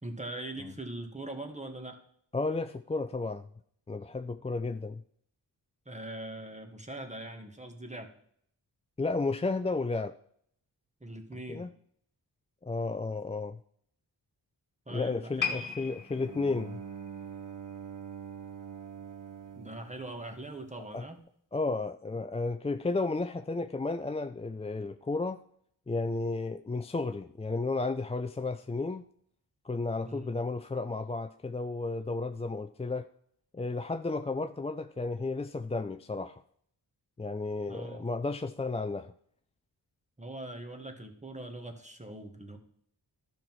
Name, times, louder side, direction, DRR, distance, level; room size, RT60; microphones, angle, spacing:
voice 1, 0.0-2.0 5.8-8.1 11.0-11.7 14.9-15.7 19.5-21.2 30.0-30.4 37.7-38.1 40.2-42.6, right 1 dB, 15° right, 5 dB, 1.7 m, -42 dB
voice 2, 2.3-3.5 3.9-5.0 9.0-10.1 11.5-11.7 12.6-13.6 14.9-16.8 20.9-21.0 21.5-25.4 25.9-29.0 29.6-33.1 33.5-36.4 37.2-39.1, left 3 dB, 15° left, 9 dB, 0.3 m, -33 dB
sound 1, 15.4-18.7 19.0-19.3 19.9-20.0, left 7 dB, 45° left, 1.5 m, -38 dB
Bowed string instrument, 16.1-21.0, right 7 dB, 45° right, 0.8 m, -45 dB
11.5 x 5.8 x 4.6 m, 0.66 s
cardioid pair, 55°, 43 cm